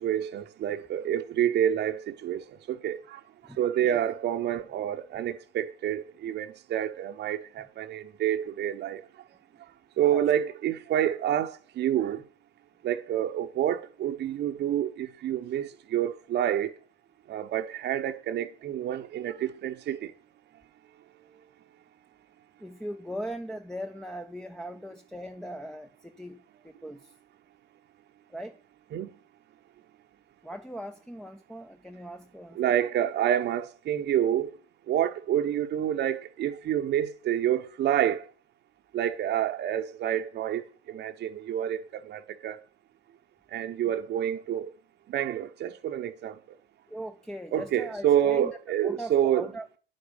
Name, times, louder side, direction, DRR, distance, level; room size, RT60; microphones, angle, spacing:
voice 1, 0.0-3.2 3.6-9.0 10.0-12.2 12.8-16.7 17.3-20.1 28.9-29.1 32.5-34.5 34.9-38.2 38.9-40.6 40.9-42.6 43.5-44.7 45.1-46.3 47.5-49.5, right 10 dB, 35° right, 1.1 m, -28 dB
voice 2, 3.4-4.0 10.1-10.2 22.6-27.2 28.3-28.6 30.4-32.6 43.8-43.9 46.9-49.8, equal, ahead, 0.9 m, -40 dB
10.0 x 9.7 x 5.3 m
hypercardioid pair, 100°, 32 cm